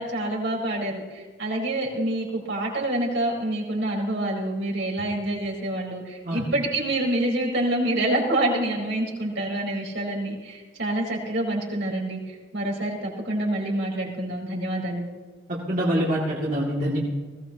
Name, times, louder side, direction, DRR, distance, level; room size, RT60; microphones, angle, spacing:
voice 1, 0.0-15.1, right 1 dB, 70° right, -3 dB, 4.8 m, -27 dB
voice 2, 15.5-17.0, equal, 45° right, -5 dB, 2.6 m, -25 dB
20.5 x 17.5 x 3.0 m, 1.4 s
head